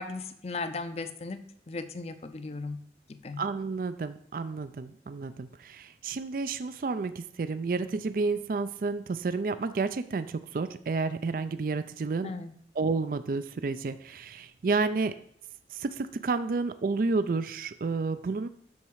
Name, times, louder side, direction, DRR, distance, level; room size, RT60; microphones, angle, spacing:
voice 1, 0.0-1.4 1.7-2.8 3.2-3.4 12.2-12.5, left 3 dB, 35° left, 10 dB, 0.5 m, -36 dB
voice 2, 3.4-12.3 12.8-15.2 15.7-18.5, right 4 dB, 50° right, 12 dB, 0.4 m, -30 dB
7.2 x 6.7 x 4.7 m, 0.69 s
head